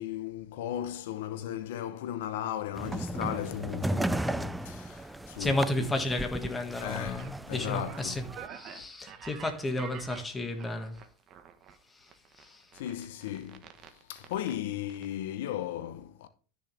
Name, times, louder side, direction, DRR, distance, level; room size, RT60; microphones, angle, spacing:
voice 1, 0.0-5.9 6.8-8.3 8.8-8.9 12.7-13.7 14.1-16.3, left 11 dB, 75° left, 0.9 m, -36 dB
sound 1, 2.7-8.5, right 1 dB, 5° right, 0.4 m, -35 dB
voice 2, 5.4-8.2 8.5-11.0 12.4-12.6, left 1 dB, 10° left, 1.9 m, -32 dB
sound 2, 6.9-11.7 12.1-14.6 14.9-15.0, right 8 dB, 40° right, 1.3 m, -48 dB
12.5 x 6.4 x 3.5 m
supercardioid pair, 125°, 0 cm